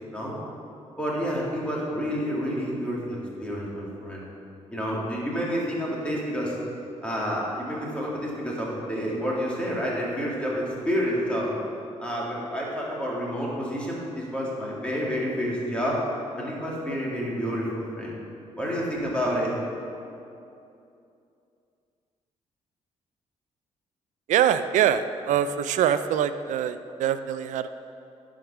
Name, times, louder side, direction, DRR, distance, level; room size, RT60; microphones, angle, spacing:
voice 1, 1.0-4.2 4.7-6.6 7.0-11.5 12.0-16.0 16.4-18.1 18.6-19.5, equal, 10° left, -5 dB, 2.3 m, -29 dB
voice 2, 24.3-27.7, right 9 dB, 80° right, 11 dB, 0.4 m, -24 dB
11.0 x 5.1 x 6.1 m, 2.7 s
cardioid pair, 105°, 13 cm